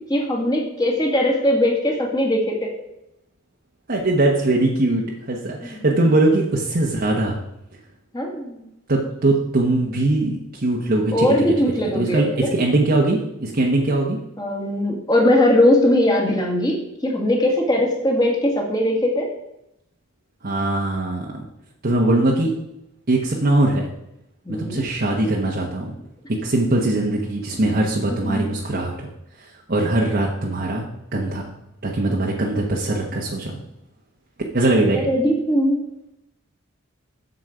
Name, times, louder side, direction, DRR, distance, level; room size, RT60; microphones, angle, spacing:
voice 1, 0.1-2.7 5.6-5.8 8.1-8.7 11.1-12.5 14.4-19.3 24.5-24.8 28.1-28.6 35.0-35.8, left 1 dB, 20° left, 0 dB, 1.8 m, -20 dB
voice 2, 3.9-7.4 8.9-11.3 11.9-14.2 20.4-21.4 21.8-22.5 23.1-23.9 24.5-25.9 26.4-29.1 29.4-30.8 31.1-31.5 31.8-33.6 34.5-35.1, right 2 dB, 50° right, -2 dB, 1.1 m, -21 dB
7.9 x 7.1 x 5.0 m, 0.84 s
head